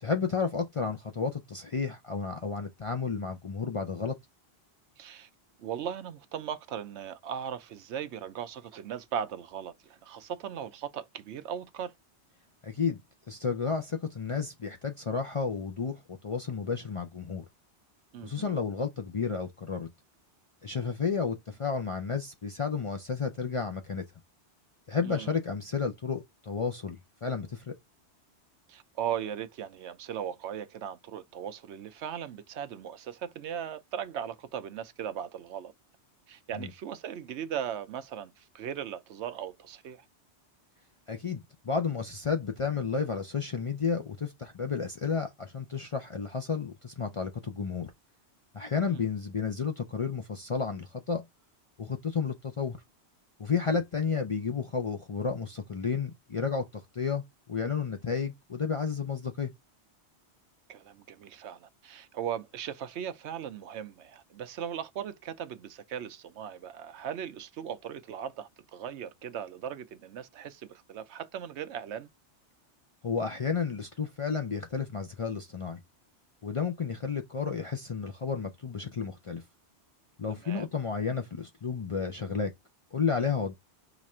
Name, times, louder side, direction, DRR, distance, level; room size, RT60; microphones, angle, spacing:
voice 1, 0.0-4.2 12.6-13.0 13.3-17.4 18.2-19.9 20.6-24.0 24.9-27.7 36.6-36.7 41.1-47.9 48.5-51.2 51.8-52.8 53.4-57.2 57.5-59.5 73.0-75.8 76.4-79.4 80.2-82.5 82.9-83.5, left 5 dB, 45° left, 0.4 m, -32 dB
voice 2, 5.0-5.3 5.6-11.9 18.1-18.6 25.0-25.3 28.7-35.7 36.3-40.0 48.8-49.0 53.7-53.8 60.7-72.1 80.4-80.7, right 9 dB, 75° right, 0.9 m, -38 dB
5.0 x 2.5 x 4.2 m
omnidirectional pair, 1.2 m